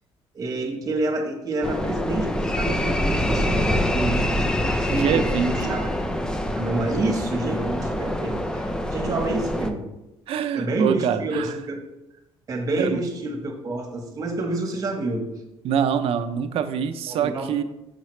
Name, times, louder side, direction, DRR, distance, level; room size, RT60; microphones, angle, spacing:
voice 1, 0.3-5.2 5.7-5.9 6.6-9.9 10.5-11.8 12.5-15.2 17.1-17.5, right 2 dB, 35° right, 2 dB, 1.2 m, -28 dB
sound 1, 1.6-9.7, left 1 dB, 5° left, 0.5 m, -25 dB
voice 2, 4.9-5.8 10.3-11.6 12.8-13.1 15.6-17.6, right 7 dB, 65° right, 8 dB, 0.6 m, -25 dB
6.6 x 5.8 x 3.2 m, 0.91 s
cardioid pair, 130°, 10 cm